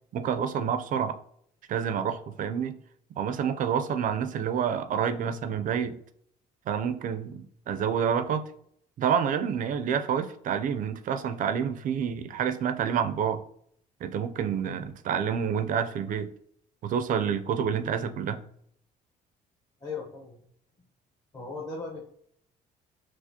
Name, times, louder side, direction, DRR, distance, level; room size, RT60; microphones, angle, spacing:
voice 1, 0.1-1.2 1.7-2.8 3.2-6.0 6.7-8.5 9.0-13.4 14.0-16.3 16.8-18.4, right 7 dB, 50° right, 10 dB, 0.4 m, -28 dB
voice 2, 19.8-20.5 21.3-22.0, left 4 dB, 25° left, -4 dB, 0.8 m, -37 dB
4.9 x 2.0 x 2.7 m, 0.65 s
cardioid pair, 110°, 17 cm